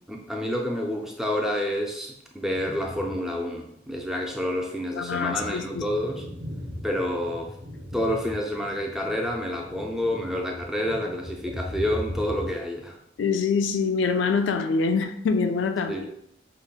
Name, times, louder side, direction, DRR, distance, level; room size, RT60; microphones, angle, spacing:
voice 1, 0.1-6.2 6.8-7.5 7.9-13.0 15.9-16.0, left 1 dB, ahead, 0.3 m, -28 dB
sound 1, 2.5-3.4 3.8-3.9 4.6-12.5, left 1 dB, 40° right, 0.7 m, -39 dB
voice 2, 5.0-5.8 13.2-16.1, left 5 dB, 85° left, 0.3 m, -25 dB
5.2 x 2.1 x 2.2 m
head